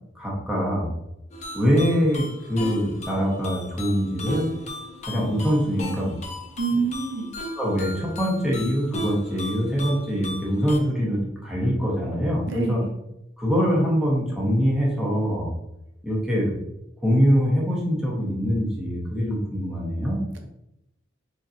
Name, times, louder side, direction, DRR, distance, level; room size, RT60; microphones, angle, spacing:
voice 1, 0.1-0.9 1.5-4.5 5.0-6.2 7.6-12.8 13.4-15.5 16.0-16.5 17.0-20.2, equal, 5° right, -5 dB, 1.1 m, -23 dB
sound 1, 1.3-10.8, left 1 dB, 35° left, 0.6 m, -36 dB
voice 2, 6.6-7.3 12.5-12.9, right 4 dB, 70° right, 3 dB, 0.8 m, -26 dB
4.1 x 3.8 x 2.7 m, 0.86 s
head